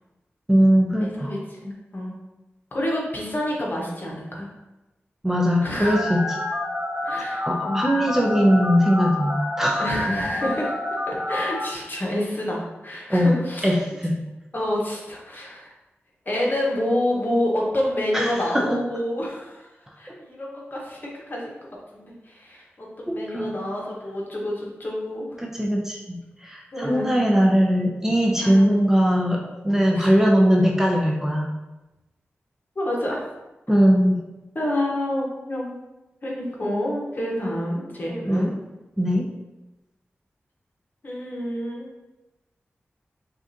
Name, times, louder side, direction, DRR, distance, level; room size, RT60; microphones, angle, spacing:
voice 1, 0.5-1.3 5.2-6.2 7.5-9.9 13.1-13.3 13.6-14.2 18.1-18.8 20.1-20.2 23.1-23.6 25.4-31.5 33.7-34.2 38.3-38.5 39.0-39.3, equal, 10° right, -1 dB, 0.6 m, -20 dB
voice 2, 1.0-2.2 2.7-4.5 5.6-6.0 7.0-7.9 9.8-10.7 11.1-13.8 14.5-15.7 16.2-19.7 20.0-21.5 21.9-25.4 26.7-27.2 28.4-28.7 29.9-30.1 32.7-33.2 34.5-35.8 36.2-38.5 41.0-41.9, left 1 dB, 45° left, -3 dB, 1.2 m, -28 dB
Telephone, 5.8-11.6, left 1 dB, 65° right, 1.2 m, -28 dB
6.0 x 2.5 x 2.8 m, 1.0 s
wide cardioid pair, 70°, 5 cm